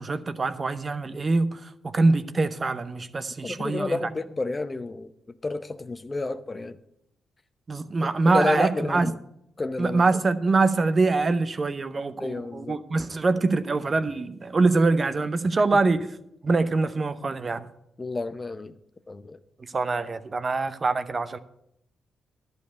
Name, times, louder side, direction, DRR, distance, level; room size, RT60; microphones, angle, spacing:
voice 1, 0.0-4.0 7.7-9.1 9.8-16.1 16.4-17.7 19.6-21.4, right 3 dB, 40° right, 0.7 m, -24 dB
voice 2, 3.4-5.1 5.4-6.8 8.0-9.1 9.6-10.0 12.2-12.8 15.7-15.8 18.0-18.8 19.1-19.4, left 3 dB, 30° left, 0.8 m, -30 dB
11.5 x 5.3 x 8.2 m
hypercardioid pair, 45°, 0 cm